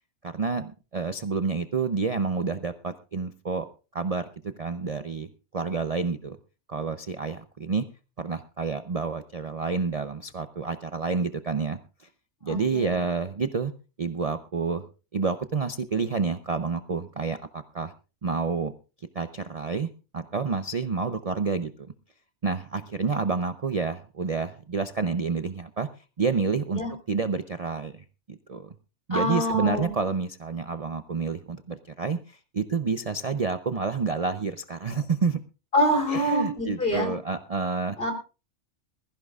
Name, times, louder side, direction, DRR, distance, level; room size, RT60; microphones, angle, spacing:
voice 1, 0.2-3.6 3.9-5.3 5.5-6.4 6.7-7.8 8.2-12.1 12.4-13.7 14.0-14.8 15.1-17.9 18.2-18.7 19.1-19.9 20.1-21.9 22.4-25.9 26.2-28.0 28.3-28.7 29.1-35.4 36.1-38.0, right 4 dB, 35° right, 9 dB, 0.6 m, -29 dB
voice 2, 12.4-13.0 26.7-26.9 29.1-29.9 35.7-37.1 38.0-38.1, left 1 dB, 45° left, 4 dB, 3.9 m, -25 dB
21.5 x 15.0 x 2.4 m, 0.32 s
omnidirectional pair, 1.3 m